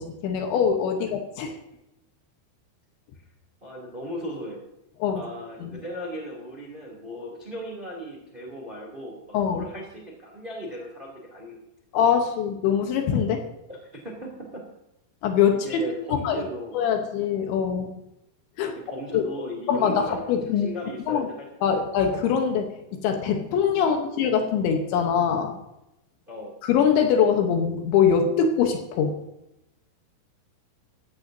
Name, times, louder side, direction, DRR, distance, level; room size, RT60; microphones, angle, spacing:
voice 1, 0.0-1.5 5.0-5.2 5.6-5.8 9.3-9.7 11.9-13.4 15.2-15.8 16.1-16.4 16.7-17.9 18.6-18.7 19.1-19.2 19.7-20.7 21.1-21.3 21.6-25.5 26.6-29.1, left 7 dB, 75° left, 4 dB, 3.3 m, -23 dB
voice 2, 3.6-4.6 5.1-9.1 9.5-11.6 13.7-14.6 15.5-16.8 18.6-20.2 20.5-21.5 21.7-21.8 23.8-24.0 26.3-26.5, equal, 15° right, -1 dB, 1.7 m, -37 dB
15.5 x 14.5 x 2.8 m, 0.86 s
omnidirectional pair, 5.7 m